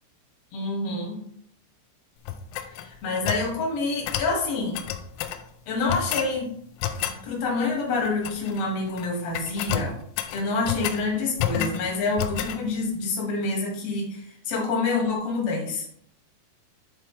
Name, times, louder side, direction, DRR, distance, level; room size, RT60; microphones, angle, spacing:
voice 1, 0.5-1.2 2.7-4.8 5.7-6.5 7.2-9.9 10.3-15.8, left 3 dB, 50° left, -3 dB, 2.0 m, -27 dB
sound 1, 2.3-3.5 4.1-4.3 4.7-5.4 5.9-6.3 6.8-7.2 8.0-8.6 8.9-9.1 9.3-11.0 11.4-11.8 12.2-12.6, left 10 dB, 85° left, 3.2 m, -30 dB
10.5 x 4.4 x 3.3 m, 0.69 s
omnidirectional pair, 5.8 m